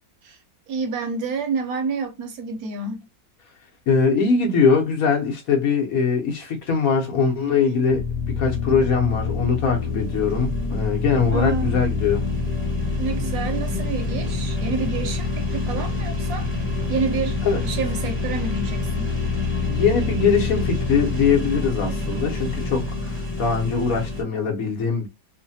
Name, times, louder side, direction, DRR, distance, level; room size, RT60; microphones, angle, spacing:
voice 1, 0.7-3.1 11.3-11.8 13.0-16.5 16.9-19.1, right 5 dB, 70° right, 1.0 m, -28 dB
voice 2, 3.9-12.3 17.4-17.6 19.7-25.1, left 5 dB, 60° left, 1.2 m, -22 dB
sound 1, 7.9-24.2, left 4 dB, 10° left, 0.9 m, -26 dB
3.2 x 2.1 x 2.6 m
omnidirectional pair, 1.7 m